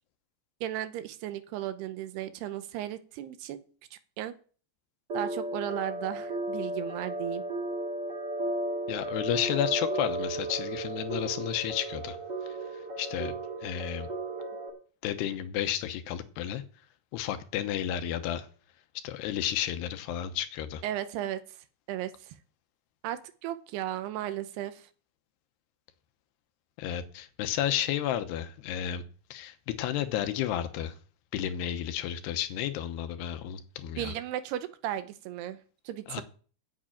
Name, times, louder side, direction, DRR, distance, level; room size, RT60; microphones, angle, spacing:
voice 1, 0.6-3.6 3.9-4.3 5.1-7.4 20.8-21.4 21.9-22.3 23.0-24.9 34.0-36.2, right 12 dB, 85° right, 12 dB, 2.9 m, -35 dB
sound 1, 5.1-14.7, right 2 dB, 35° right, 2.0 m, -34 dB
voice 2, 8.9-12.2 12.4-14.1 15.0-16.6 17.1-18.5 19.0-20.8 26.8-29.0 29.3-31.0 31.3-34.2 36.1-36.2, left 11 dB, 90° left, 10 dB, 3.0 m, -32 dB
8.9 x 7.4 x 8.9 m, 0.41 s
omnidirectional pair, 4.7 m